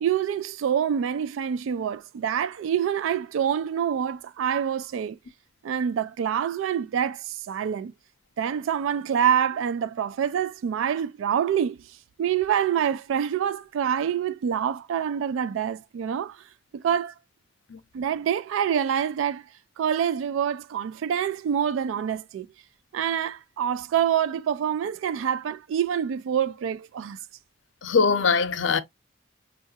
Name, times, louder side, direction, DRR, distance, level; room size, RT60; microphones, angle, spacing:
voice 1, 0.0-5.2 5.6-7.9 8.4-11.8 12.2-16.4 16.7-17.1 17.9-19.4 19.8-22.5 22.9-27.2, right 8 dB, 80° right, 0.3 m, -26 dB
voice 2, 27.8-28.8, left 5 dB, 70° left, 0.6 m, -22 dB
5.4 x 2.4 x 2.7 m
head